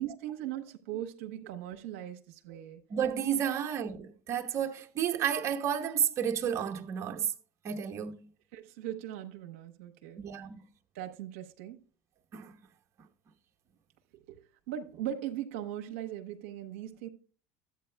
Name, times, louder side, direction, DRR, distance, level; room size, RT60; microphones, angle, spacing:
voice 1, 0.0-2.8 3.4-3.5 8.5-10.2 10.9-11.8 14.1-14.4 14.7-17.1, right 11 dB, 80° right, 0.8 m, -39 dB
voice 2, 2.9-7.3 7.6-8.3 10.2-10.7 12.3-12.5, right 9 dB, 45° right, 0.9 m, -31 dB
12.0 x 8.4 x 2.2 m
supercardioid pair, 90°, 7 cm